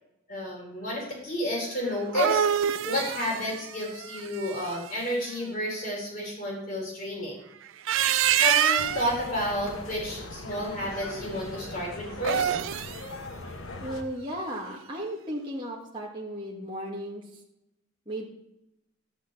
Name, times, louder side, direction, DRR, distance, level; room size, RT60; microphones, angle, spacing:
voice 1, 0.3-7.4 8.4-12.5, left 1 dB, 45° left, -2 dB, 3.9 m, -31 dB
electronic meows, 1.9-4.9 7.7-9.2 12.1-13.0, right 9 dB, 85° right, 0.4 m, -26 dB
sound 1, 8.8-14.0, left 2 dB, 90° left, 1.3 m, -40 dB
voice 2, 13.8-17.2 18.1-18.3, right 1 dB, 25° right, -4 dB, 1.9 m, -35 dB
12.0 x 5.0 x 7.9 m, 0.85 s
head